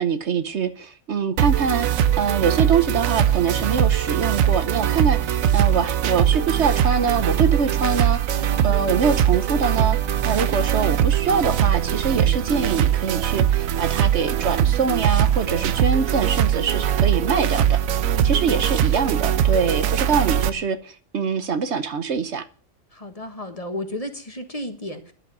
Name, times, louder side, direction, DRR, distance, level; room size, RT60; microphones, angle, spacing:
voice 1, 0.0-1.9 2.2-10.0 10.2-22.4, right 5 dB, 60° right, 1.2 m, -24 dB
sound 1, 1.4-20.5, right 10 dB, 85° right, 1.2 m, -21 dB
voice 2, 8.3-8.9 10.4-10.6 16.5-16.9 18.3-18.6 22.9-25.1, left 1 dB, 30° left, 1.5 m, -34 dB
11.0 x 7.5 x 9.6 m
omnidirectional pair, 1.4 m